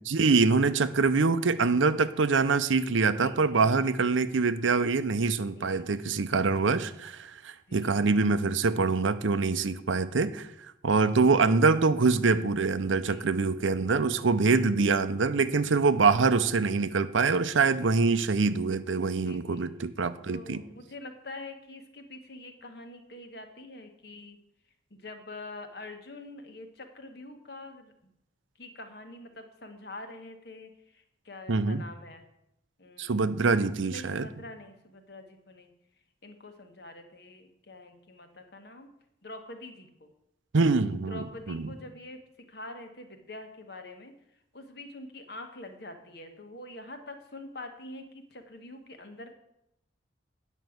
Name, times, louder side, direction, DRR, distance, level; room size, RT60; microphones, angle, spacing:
voice 1, 0.0-10.5 10.8-20.6 31.5-31.8 33.0-34.3 40.5-41.7, right 4 dB, 85° right, 13 dB, 0.6 m, -25 dB
voice 2, 3.2-3.9 5.6-5.9 6.3-6.8 7.7-8.0 12.9-13.3 14.4-14.7 15.5-15.9 17.9-18.1 19.2-19.7 20.3-24.4 24.9-27.9 28.6-32.2 32.8-33.3 33.9-35.7 36.2-38.9 39.2-40.1 41.1-42.2 42.5-44.1 44.5-49.3, left 2 dB, 55° left, 6 dB, 1.3 m, -45 dB
9.2 x 5.4 x 7.9 m, 0.81 s
head